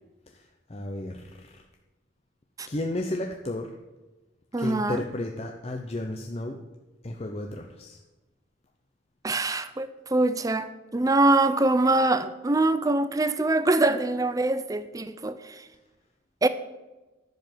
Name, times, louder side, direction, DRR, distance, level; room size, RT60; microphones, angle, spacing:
voice 1, 0.3-1.6 2.6-3.7 4.6-6.6 7.0-8.0, left 1 dB, 30° left, 3 dB, 0.6 m, -33 dB
voice 2, 4.5-5.0 9.2-15.6 16.4-16.5, right 2 dB, 15° right, 12 dB, 0.5 m, -24 dB
10.5 x 6.9 x 7.6 m, 1.1 s
head